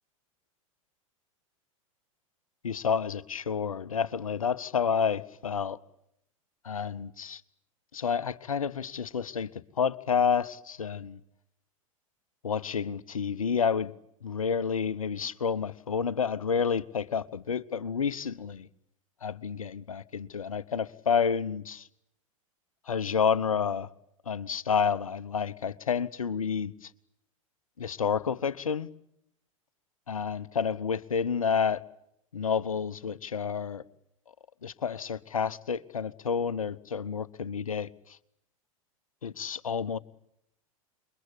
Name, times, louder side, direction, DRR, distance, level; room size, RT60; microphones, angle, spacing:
voice 1, 2.6-5.8 6.6-7.4 7.9-9.5 9.8-11.2 12.4-13.9 14.2-18.7 19.2-21.9 22.9-23.9 24.3-26.9 27.8-28.9 30.1-31.8 32.3-33.8 34.6-38.2 39.2-40.0, left 6 dB, 70° left, 1.0 m, -29 dB
28.0 x 23.0 x 8.6 m
figure-of-eight pair, 90°, 18 cm